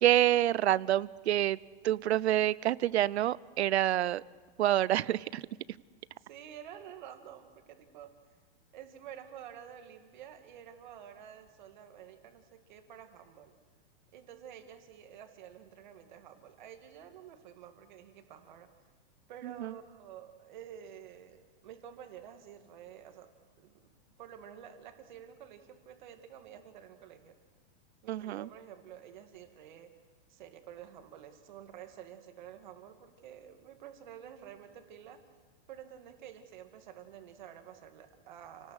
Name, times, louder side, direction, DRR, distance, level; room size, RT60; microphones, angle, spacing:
voice 1, 0.0-1.6 1.8-4.2 4.6-5.4 19.6-19.7 28.1-28.5, right 13 dB, 90° right, 21 dB, 0.7 m, -27 dB
voice 2, 6.2-8.2 8.7-13.6 14.1-18.7 19.3-23.3 23.6-23.9 24.2-27.4 28.0-29.9 30.3-35.2 35.7-38.7, right 9 dB, 45° right, 6 dB, 2.3 m, -50 dB
29.0 x 18.5 x 6.5 m, 1.3 s
supercardioid pair, 180°, 32 cm